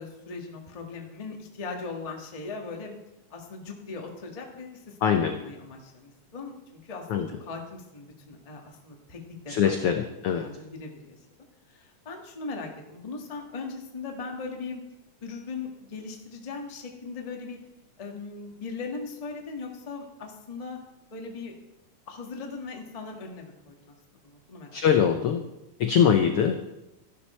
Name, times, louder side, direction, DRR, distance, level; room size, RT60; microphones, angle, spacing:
voice 1, 0.0-3.0 3.3-10.0 10.4-11.2 11.7-14.8 15.2-17.6 18.0-20.8 21.1-21.5 22.1-23.9 24.2-24.8, left 4 dB, 25° left, 1 dB, 0.7 m, -39 dB
voice 2, 5.0-5.3 7.1-7.3 9.5-10.4 24.7-25.4 25.8-26.8, left 8 dB, 80° left, 6 dB, 1.3 m, -23 dB
13.0 x 11.5 x 4.3 m, 0.92 s
omnidirectional pair, 3.6 m